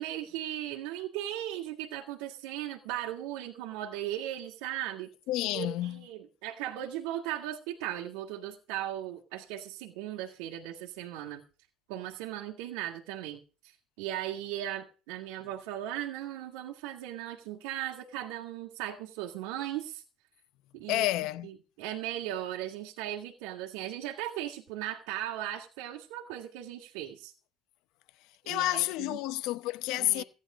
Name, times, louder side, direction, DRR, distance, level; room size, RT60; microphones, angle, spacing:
voice 1, 0.0-5.1 5.5-11.4 11.9-13.4 14.0-20.0 20.7-21.1 21.4-21.5 21.8-27.3 28.4-29.2 30.0-30.2, right 12 dB, 85° right, 2.1 m, -37 dB
voice 2, 5.3-6.0 20.9-21.5 28.5-30.2, left 16 dB, 70° left, 0.7 m, -30 dB
15.5 x 10.5 x 5.1 m
cardioid pair, 115°, 0 cm